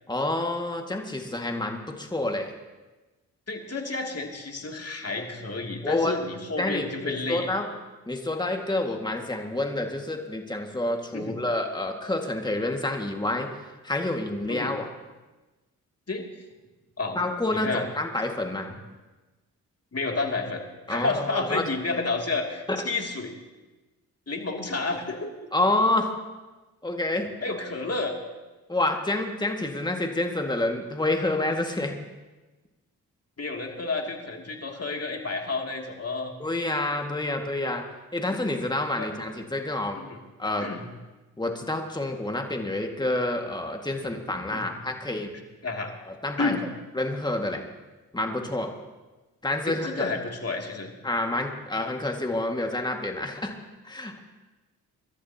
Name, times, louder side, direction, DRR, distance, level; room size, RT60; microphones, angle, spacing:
voice 1, 0.1-2.5 5.8-6.1 6.6-7.7 8.1-13.5 13.8-14.9 17.2-18.7 20.9-21.7 22.7-22.8 25.5-26.2 26.8-27.3 28.7-31.9 36.4-37.8 38.1-40.0 40.4-40.7 41.4-45.3 46.2-46.5 46.9-47.6 48.1-48.7 49.4-50.1 51.0-53.5 53.8-54.2, left 2 dB, 10° left, 3 dB, 2.0 m, -28 dB
voice 2, 3.5-7.5 11.1-11.4 14.5-14.7 16.1-16.2 17.0-17.2 17.5-17.9 19.9-23.3 24.3-25.3 27.4-28.1 33.4-36.3 39.0-39.1 40.0-40.2 40.6-40.9 44.5-44.7 45.6-45.9 46.4-46.6 49.7-50.9, left 3 dB, 35° left, 1 dB, 2.7 m, -30 dB
26.0 x 13.0 x 2.9 m, 1.2 s
hypercardioid pair, 40°, 42 cm